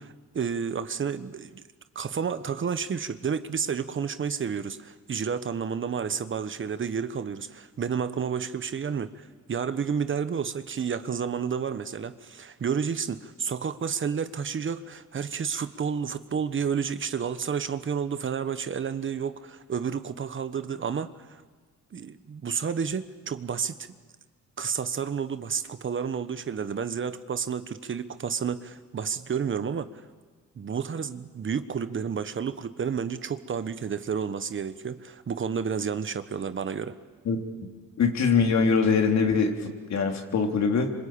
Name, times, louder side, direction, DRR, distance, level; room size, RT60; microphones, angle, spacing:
voice 1, 0.0-1.6 1.9-21.4 21.9-23.8 24.6-29.9 30.6-36.9, right 6 dB, 40° right, 11 dB, 1.3 m, -31 dB
voice 2, 38.0-40.9, left 5 dB, 65° left, 3 dB, 3.5 m, -23 dB
26.5 x 25.5 x 8.8 m, 1.4 s
cardioid pair, 90°, 30 cm